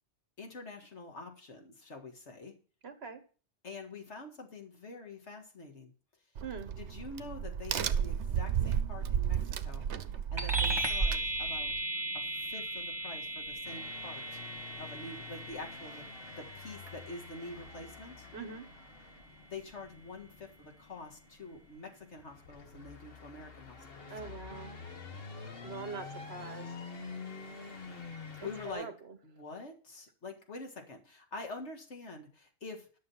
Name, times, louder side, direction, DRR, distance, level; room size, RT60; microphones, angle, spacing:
voice 1, 0.4-2.5 3.6-5.9 6.8-9.9 10.3-11.7 12.3-14.4 14.8-16.1 16.4-18.3 19.4-24.1 28.4-28.9 29.2-32.9, left 3 dB, 85° left, 3 dB, 2.2 m, -46 dB
voice 2, 2.8-3.2 6.4-6.7 18.3-18.7 24.1-24.7 25.6-26.7 27.0-27.2 28.4-29.2, right 5 dB, 65° right, 9 dB, 1.4 m, -43 dB
Crack, 6.4-11.8, right 9 dB, 85° right, 1.0 m, -33 dB
sound 1, 10.4-20.2, right 2 dB, 25° right, 1.6 m, -37 dB
sound 2, 13.6-28.7, left 4 dB, 55° left, 1.5 m, -48 dB
11.5 x 6.7 x 5.6 m, 0.39 s
omnidirectional pair, 1.1 m